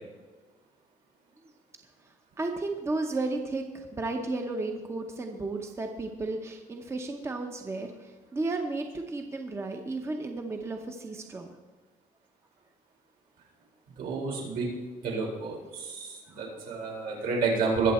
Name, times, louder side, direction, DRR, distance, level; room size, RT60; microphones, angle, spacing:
voice 1, 2.4-11.5 16.3-16.6 17.1-17.3, right 2 dB, 20° right, 4 dB, 0.8 m, -34 dB
voice 2, 14.0-14.7 15.0-16.1 16.4-17.9, right 4 dB, 80° right, -2 dB, 4.5 m, -29 dB
21.0 x 7.4 x 4.3 m, 1.3 s
cardioid pair, 180°, 15 cm